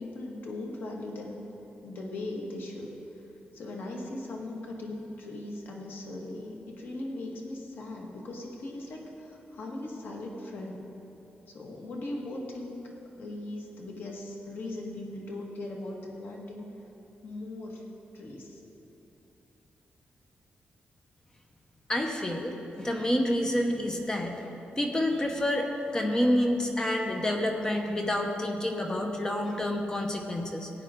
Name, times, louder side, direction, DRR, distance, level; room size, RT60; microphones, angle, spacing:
voice 1, 0.0-1.5 1.8-2.9 3.5-10.9 11.5-12.9 13.2-16.6 17.2-18.6, left 2 dB, 70° left, -1 dB, 1.7 m, -39 dB
voice 2, 21.9-24.4 24.8-30.7, left 1 dB, 20° left, 2 dB, 0.9 m, -28 dB
16.5 x 9.0 x 3.7 m, 3.0 s
wide cardioid pair, 145°, 4 cm